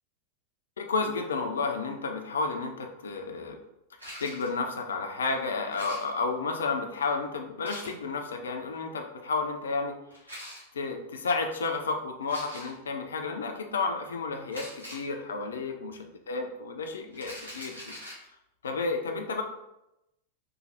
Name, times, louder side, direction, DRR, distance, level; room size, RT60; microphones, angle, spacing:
voice 1, 0.8-3.6 4.2-10.0 10.7-17.9 18.6-19.4, left 4 dB, 65° left, 4 dB, 0.4 m, -31 dB
sound 1, 4.0-4.6 5.7-6.4 7.6-8.0 10.1-10.6 12.2-12.8 14.5-15.1 17.1-18.2, equal, 85° right, 0.8 m, -43 dB
3.2 x 2.2 x 2.7 m, 0.88 s
figure-of-eight pair, 90°, 0 cm